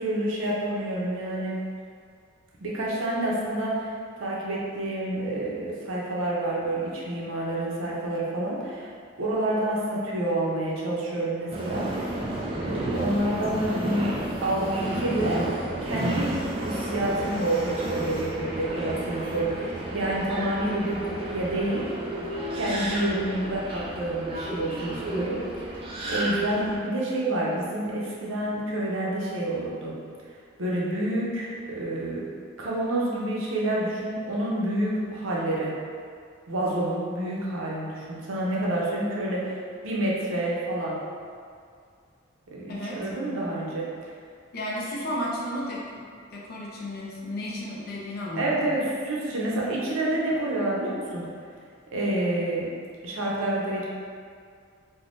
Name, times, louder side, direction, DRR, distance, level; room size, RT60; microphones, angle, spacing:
voice 1, 0.0-1.6 2.6-3.9 4.2-8.9 9.2-12.3 12.6-15.4 15.8-21.8 22.5-29.9 30.6-32.2 32.6-35.7 36.5-39.6 39.8-41.0 42.5-43.9 48.4-51.2 51.9-52.7 53.0-53.9, right 1 dB, 75° right, -5 dB, 0.6 m, -28 dB
Subway metro underground, 11.5-26.8, right 1 dB, 25° right, 0.3 m, -32 dB
voice 2, 42.7-43.1 44.5-46.1 46.3-48.7, left 1 dB, 50° left, -4 dB, 0.5 m, -33 dB
3.4 x 2.1 x 2.5 m, 2.2 s
head